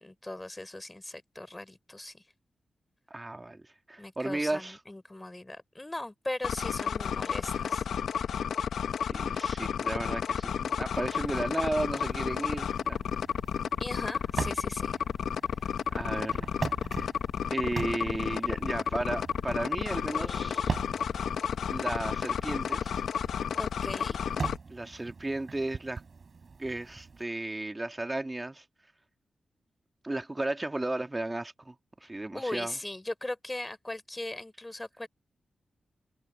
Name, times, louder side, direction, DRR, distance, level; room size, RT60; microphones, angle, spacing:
voice 1, 0.0-2.2 4.0-7.9 13.8-14.9 23.6-24.4 32.0-35.1, left 1 dB, 20° left, 3.5 m, -39 dB
voice 2, 3.1-4.8 9.1-13.0 15.9-16.5 17.0-17.1 17.5-20.8 21.7-23.0 24.7-26.0 26.6-28.6 30.0-31.8 32.0-32.8, right 2 dB, 25° right, 2.2 m, -34 dB
sound 1, 6.4-24.6, left 7 dB, 85° left, 1.0 m, -31 dB
sound 2, 10.7-27.2, right 4 dB, 55° right, 7.1 m, -42 dB
sound 3, 20.1-22.4, left 4 dB, 50° left, 7.4 m, -53 dB
cardioid pair, 50°, 0 cm